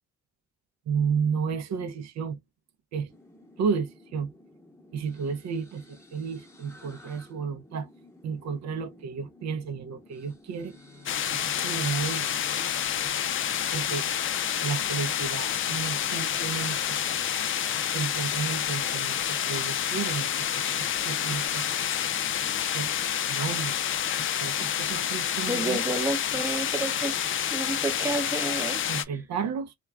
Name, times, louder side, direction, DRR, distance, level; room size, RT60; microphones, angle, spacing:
voice 1, 0.9-2.4 2.9-3.1 3.6-4.3 4.9-7.9 8.2-10.8 11.3-12.3 13.7-14.1 14.6-17.0 17.9-21.7 22.7-22.9 23.2-23.8 24.4-25.8 28.9-29.8, right 6 dB, 65° right, 0.5 m, -32 dB
sound 1, 3.1-21.5, left 1 dB, 10° left, 0.9 m, -53 dB
Bowed string instrument, 10.6-16.0, left 2 dB, 45° right, 1.0 m, -53 dB
sound 2, 11.1-29.0, left 9 dB, 45° left, 0.4 m, -28 dB
voice 2, 25.5-27.1 27.5-28.8, right 2 dB, 10° right, 0.6 m, -30 dB
2.3 x 2.2 x 3.3 m
cardioid pair, 90°, 30 cm